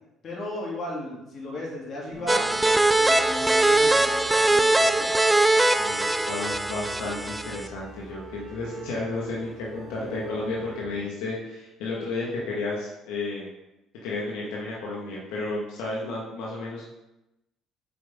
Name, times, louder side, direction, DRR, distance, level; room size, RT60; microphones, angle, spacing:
voice 1, 0.2-5.1, left 1 dB, 50° left, -4 dB, 2.7 m, -36 dB
sound 1, 2.1-10.9, right 3 dB, 35° right, 1.7 m, -43 dB
sound 2, 2.3-7.7, right 2 dB, 10° right, 0.4 m, -21 dB
voice 2, 5.8-13.5 14.0-16.8, left 2 dB, 90° left, -4 dB, 1.4 m, -32 dB
7.9 x 5.3 x 3.6 m, 0.95 s
cardioid pair, 105°, 0 cm